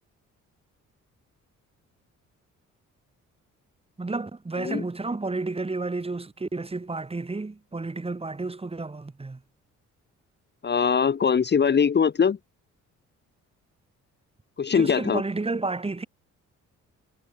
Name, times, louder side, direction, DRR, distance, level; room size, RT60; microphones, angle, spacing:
voice 1, 4.0-9.4 14.7-16.1, right 3 dB, 20° right, 2.7 m, -31 dB
voice 2, 10.6-12.4 14.6-15.2, left 6 dB, 35° left, 1.1 m, -22 dB
cardioid pair, 90°, 30 cm